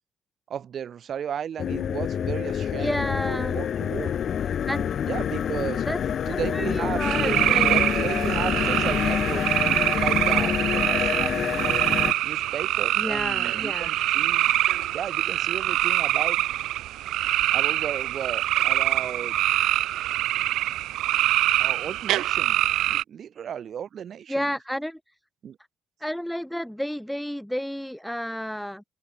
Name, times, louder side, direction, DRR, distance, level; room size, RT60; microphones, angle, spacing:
voice 1, 0.5-4.1 5.1-5.8 6.3-11.8 12.2-14.5 14.9-16.4 17.5-19.4 21.6-22.6 22.9-24.5 25.4-25.6, right 8 dB, 50° right, 1.7 m, -34 dB
sound 1, 1.6-12.1, left 8 dB, 50° left, 0.8 m, -27 dB
voice 2, 2.8-3.5 4.7-4.9 5.8-6.0 6.3-7.7 13.0-13.9 24.3-25.0 26.0-28.8, equal, ahead, 0.5 m, -31 dB
sound 2, 7.0-23.0, right 14 dB, 90° right, 0.9 m, -24 dB
open air
cardioid pair, 135°, 0 cm